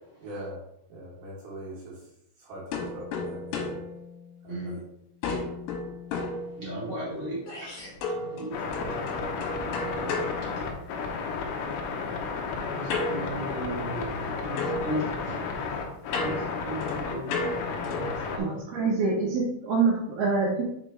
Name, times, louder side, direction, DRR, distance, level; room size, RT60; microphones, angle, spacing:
voice 1, 0.2-0.6 0.9-1.9 2.4-2.6 2.9-3.8 4.4-4.8, right 1 dB, 60° right, -6 dB, 3.0 m, -41 dB
sound 1, 2.7-4.8 5.2-7.1 8.0-11.2 12.9-14.3 14.6-18.2, left 3 dB, 70° left, 2.8 m, -34 dB
voice 2, 4.5-4.8 6.6-7.7 8.1-8.9 12.6-15.6 16.2-18.5, right 1 dB, 35° right, -8 dB, 1.8 m, -36 dB
sound 2, 7.1-7.2 7.5-8.0, left 1 dB, 55° left, 2.9 m, -42 dB
sound 3, 8.5-18.4, left 4 dB, 90° left, 2.1 m, -33 dB
voice 3, 18.4-20.6, right 4 dB, 75° right, -2 dB, 2.4 m, -25 dB
6.6 x 5.1 x 3.3 m, 0.77 s
omnidirectional pair, 5.7 m